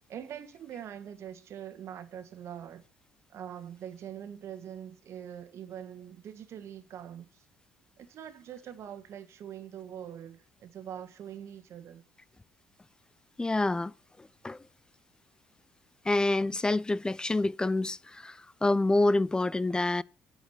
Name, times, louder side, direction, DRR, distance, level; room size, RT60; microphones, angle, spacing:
voice 1, 0.1-2.8 3.3-7.4 8.0-12.0, right 9 dB, 60° right, 1.5 m, -43 dB
voice 2, 13.4-13.9 14.2-14.6 16.1-20.0, left 2 dB, 15° left, 0.5 m, -27 dB
9.7 x 4.9 x 7.8 m
supercardioid pair, 65°, 5 cm